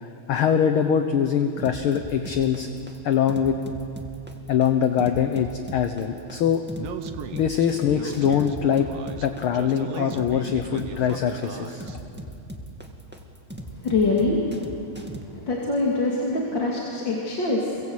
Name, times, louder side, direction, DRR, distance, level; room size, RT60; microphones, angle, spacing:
voice 1, 0.0-2.7 3.0-3.6 4.5-6.6 7.3-8.9 9.2-11.9, left 8 dB, 60° left, 7 dB, 1.5 m, -23 dB
sound 1, 1.6-15.2, equal, 5° right, 1.3 m, -38 dB
Speech, 6.8-12.0, right 7 dB, 65° right, 2.0 m, -38 dB
voice 2, 13.8-14.5 15.3-17.8, left 3 dB, 40° left, -3 dB, 3.0 m, -24 dB
28.5 x 24.0 x 8.0 m, 2.8 s
omnidirectional pair, 3.3 m